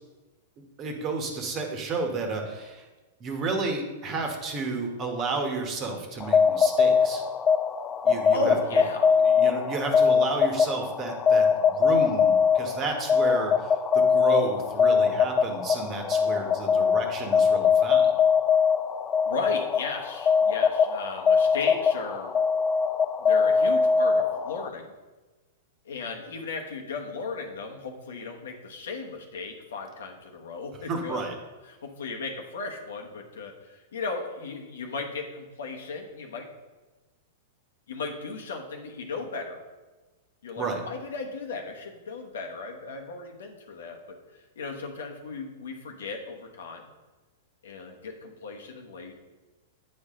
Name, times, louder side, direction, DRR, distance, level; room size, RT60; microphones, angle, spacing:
voice 1, 0.8-2.9 3.2-7.2 8.0-8.5 9.3-18.1 30.9-31.3 40.6-40.8, right 3 dB, 30° right, 3 dB, 1.3 m, -31 dB
sound 1, 6.2-24.7, left 6 dB, 20° left, 0.4 m, -22 dB
voice 2, 8.3-9.2 19.2-22.3 23.2-24.9 25.8-31.2 31.7-36.5 37.9-39.6 40.4-46.9 47.6-49.1, left 3 dB, 85° left, 2 dB, 1.1 m, -36 dB
8.6 x 4.6 x 3.7 m, 1.2 s
hypercardioid pair, 135°, 0 cm